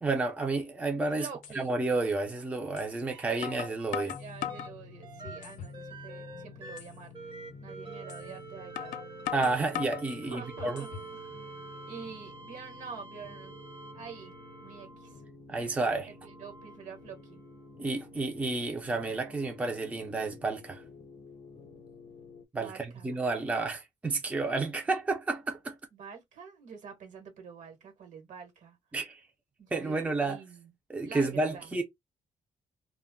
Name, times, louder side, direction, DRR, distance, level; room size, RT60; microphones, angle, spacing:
voice 1, 0.0-1.3 1.5-4.2 9.3-10.8 15.5-16.1 17.8-20.8 22.5-25.8 28.9-29.2 29.7-30.4 30.9-31.8, right 3 dB, 10° right, 0.4 m, -31 dB
sound 1, 0.8-0.9 1.4-1.6 2.8-2.9 3.4-4.7 5.3-5.8 6.2-6.3 6.8-6.9 8.1-8.2 8.8-10.1 10.6-11.1, left 11 dB, 75° left, 0.4 m, -38 dB
voice 2, 1.2-1.7 4.1-7.1 7.6-9.0 10.2-11.4 11.9-13.6 13.9-14.3 14.6-15.2 16.1-17.4 22.6-23.2 25.9-28.8 29.6-30.7 31.0-31.7, right 6 dB, 65° right, 1.2 m, -47 dB
sound 2, 3.1-4.2 4.5-15.3 16.1-17.7 19.4-19.5, right 4 dB, 35° right, 0.7 m, -47 dB
sound 3, 4.1-22.5, left 4 dB, 45° left, 0.7 m, -51 dB
2.2 x 2.0 x 3.5 m
cardioid pair, 135°, 13 cm